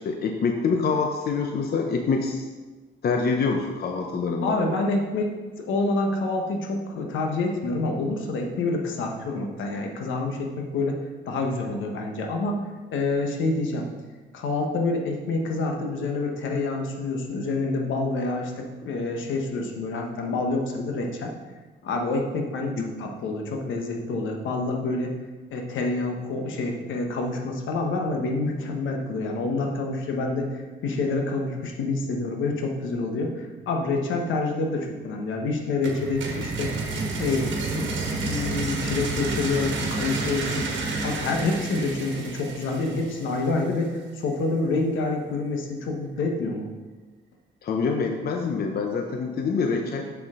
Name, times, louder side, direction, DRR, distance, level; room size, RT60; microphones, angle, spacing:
voice 1, 0.0-2.5 3.0-4.6 22.8-22.9 47.6-50.1, left 4 dB, 50° left, 3 dB, 0.7 m, -26 dB
voice 2, 4.4-11.0 11.3-12.6 12.9-13.9 14.3-21.3 21.8-25.2 25.5-36.7 37.2-37.9 38.2-40.7 41.0-46.7, left 3 dB, 75° left, 3 dB, 1.2 m, -27 dB
sound 1, 35.8-43.6, right 3 dB, 70° right, 1.4 m, -30 dB
7.1 x 6.6 x 3.7 m, 1.3 s
cardioid pair, 90°, 20 cm